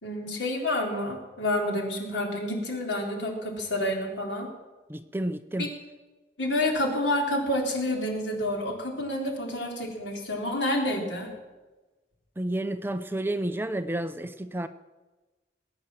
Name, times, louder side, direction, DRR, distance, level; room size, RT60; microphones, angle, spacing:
voice 1, 0.0-4.5 5.6-5.7 6.4-11.3, left 1 dB, 90° left, 1 dB, 3.8 m, -29 dB
voice 2, 4.9-5.7 12.4-14.7, right 1 dB, 10° right, 10 dB, 0.6 m, -30 dB
20.0 x 9.1 x 7.5 m, 1.2 s
head